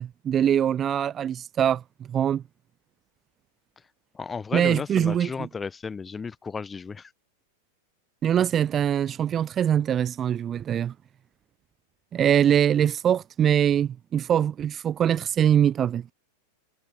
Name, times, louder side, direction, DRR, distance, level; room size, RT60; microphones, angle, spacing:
voice 1, 0.0-1.8 2.1-2.4 4.5-5.5 8.2-10.9 12.1-16.0, right 9 dB, 25° right, 0.4 m, -23 dB
voice 2, 4.1-7.1, left 5 dB, 15° left, 0.6 m, -33 dB
figure-of-eight pair, 90°, 0 cm